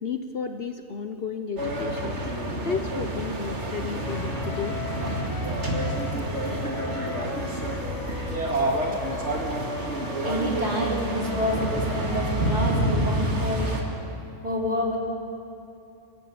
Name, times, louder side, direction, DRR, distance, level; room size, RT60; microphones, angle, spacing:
voice 1, 0.0-2.2 2.6-4.8, left 5 dB, 50° left, 7 dB, 1.1 m, -32 dB
sound 1, 1.6-13.8, right 1 dB, 65° right, 2.6 m, -28 dB
sound 2, 4.0-13.2, left 6 dB, 75° left, 1.5 m, -37 dB
voice 2, 10.2-13.9 14.4-15.0, equal, 35° right, -3 dB, 3.6 m, -28 dB
24.5 x 15.0 x 8.6 m, 2.6 s
omnidirectional pair, 1.3 m